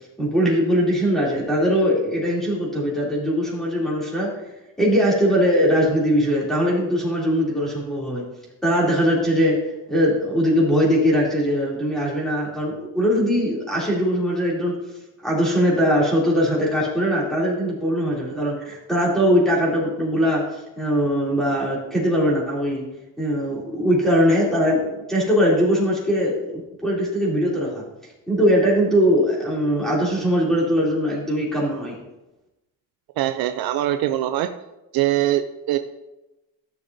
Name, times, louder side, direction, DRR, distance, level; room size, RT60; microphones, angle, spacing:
voice 1, 0.2-4.3 4.8-8.2 8.6-9.6 9.9-14.7 15.2-20.4 20.8-22.8 23.2-27.8 28.3-31.9, equal, ahead, -5 dB, 3.0 m, -21 dB
voice 2, 33.2-34.5 34.9-35.8, right 13 dB, 65° right, 9 dB, 0.6 m, -22 dB
14.0 x 6.7 x 2.7 m, 0.99 s
cardioid pair, 135°, 40 cm